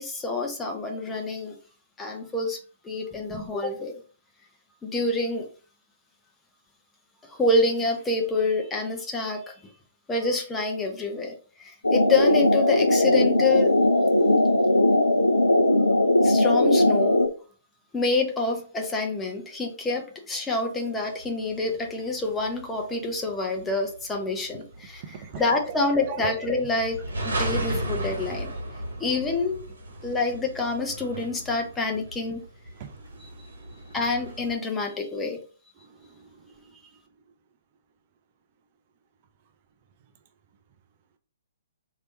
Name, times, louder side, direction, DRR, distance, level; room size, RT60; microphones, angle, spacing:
voice 1, 0.0-1.5 2.0-2.6 2.8-3.9 4.8-5.5 7.3-9.5 10.1-13.7 16.2-17.2 17.9-25.0 25.3-28.5 29.0-29.6 30.0-32.4 33.2-33.3 33.9-35.4, left 3 dB, 10° left, 0.9 m, -27 dB
sound 1, 11.8-17.3, left 1 dB, 80° left, 0.6 m, -19 dB
sound 2, 21.2-34.5, right 1 dB, 65° right, 1.2 m, -35 dB
voice 2, 25.0-25.4 25.7-26.3 28.8-29.0 30.0-30.1 32.8-34.0 35.8-36.7, right 8 dB, 35° right, 0.5 m, -41 dB
3.3 x 2.8 x 4.2 m
figure-of-eight pair, 125°, 0 cm